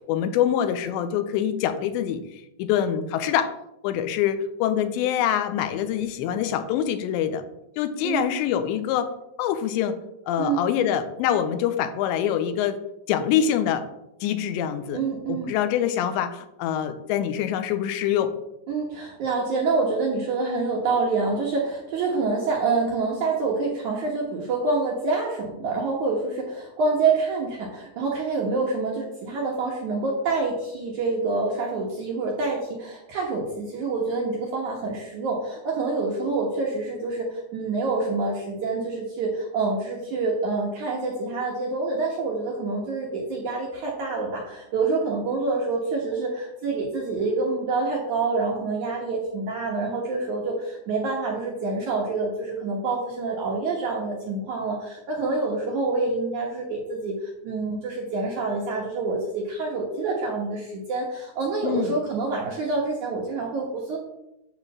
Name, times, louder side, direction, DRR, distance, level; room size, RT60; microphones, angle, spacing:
voice 1, 0.1-2.2 2.6-3.5 3.8-7.4 7.8-9.1 9.4-10.0 10.3-12.8 13.1-13.8 14.2-15.0 15.3-18.3 61.6-61.9, left 9 dB, 90° left, 10 dB, 3.0 m, -25 dB
voice 2, 14.9-15.5 18.7-64.0, right 3 dB, 65° right, -2 dB, 1.9 m, -27 dB
9.3 x 4.0 x 7.2 m, 0.86 s
omnidirectional pair, 5.0 m